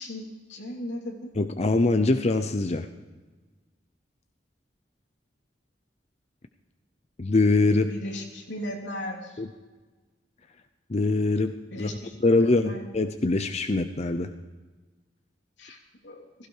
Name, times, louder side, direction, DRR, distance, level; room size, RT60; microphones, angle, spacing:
voice 1, 0.0-1.3 7.9-9.4 11.7-12.8 15.6-15.8 16.0-16.3, left 1 dB, 80° left, 0 dB, 3.1 m, -37 dB
voice 2, 1.4-2.9 7.2-7.9 9.4-9.5 10.9-11.5 11.8-11.9 12.2-14.3, left 2 dB, 35° left, 8 dB, 0.6 m, -23 dB
16.5 x 15.5 x 4.8 m, 1.3 s
head